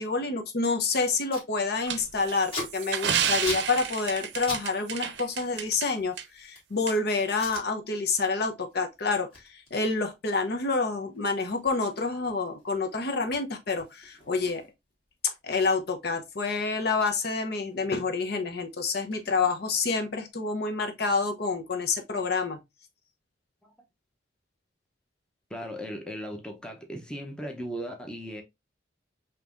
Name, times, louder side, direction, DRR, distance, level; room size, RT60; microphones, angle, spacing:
voice 1, 0.0-14.6 15.2-22.6, left 4 dB, 60° left, 0.8 m, -28 dB
Packing tape duct tape, 0.8-0.9 1.0-1.5 1.8-4.7 4.9-6.8 7.3-7.7 8.1-8.4 8.7-14.9 15.2-15.3 15.5-17.9 18.2-20.1, left 2 dB, 30° left, 1.7 m, -43 dB
sound 1, 1.9-5.9 6.2-6.3 6.9-7.0, right 8 dB, 70° right, 0.6 m, -30 dB
voice 2, 25.5-28.4, equal, 5° left, 0.7 m, -37 dB
5.2 x 2.9 x 2.5 m
head